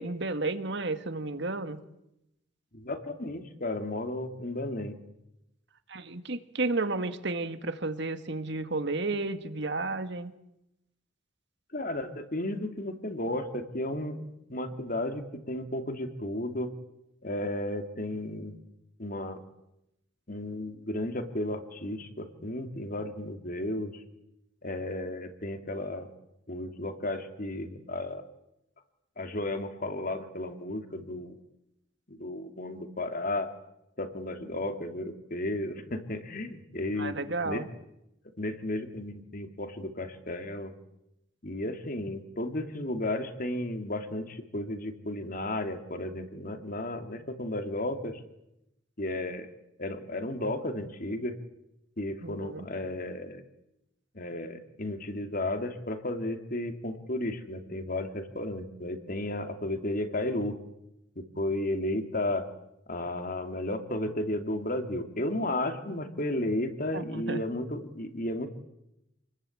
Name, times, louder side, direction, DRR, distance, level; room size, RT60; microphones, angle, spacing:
voice 1, 0.0-1.8 5.9-10.3 37.0-37.6 52.2-52.7 66.9-67.4, right 3 dB, 60° right, 9 dB, 1.8 m, -32 dB
voice 2, 2.7-5.0 11.7-16.7 17.2-18.6 19.0-19.4 20.3-24.0 24.6-26.1 26.5-28.2 29.2-31.4 32.1-33.5 34.0-37.2 37.4-37.7 38.4-40.7 41.4-48.2 49.0-49.5 49.8-51.4 52.0-53.4 54.1-60.6 61.2-62.4 62.9-68.5, left 1 dB, 45° left, 6 dB, 2.8 m, -33 dB
28.5 x 21.0 x 8.7 m, 0.86 s
head